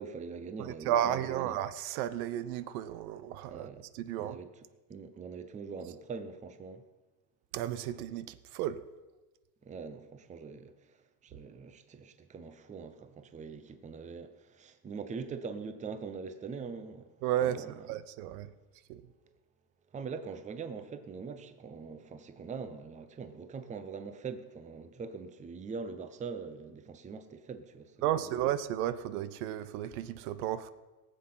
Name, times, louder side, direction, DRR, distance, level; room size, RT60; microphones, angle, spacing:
voice 1, 0.0-1.6 3.5-3.9 4.2-4.5 4.9-6.8 9.6-17.1 17.4-17.8 19.9-28.2, right 5 dB, 15° right, 0.7 m, -43 dB
voice 2, 0.6-3.7 3.9-4.4 7.5-8.8 17.2-18.5 18.9-19.0 28.0-30.7, right 11 dB, 70° right, 0.9 m, -33 dB
18.5 x 7.7 x 5.7 m
supercardioid pair, 140°, 46 cm